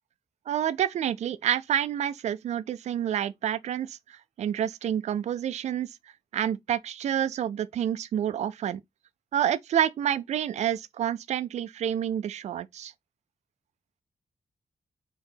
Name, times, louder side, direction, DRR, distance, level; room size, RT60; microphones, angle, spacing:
voice 1, 0.5-5.9 6.3-8.8 9.3-12.9, right 10 dB, 85° right, 0.5 m, -28 dB
4.3 x 2.9 x 3.9 m
wide cardioid pair, 150°, 11 cm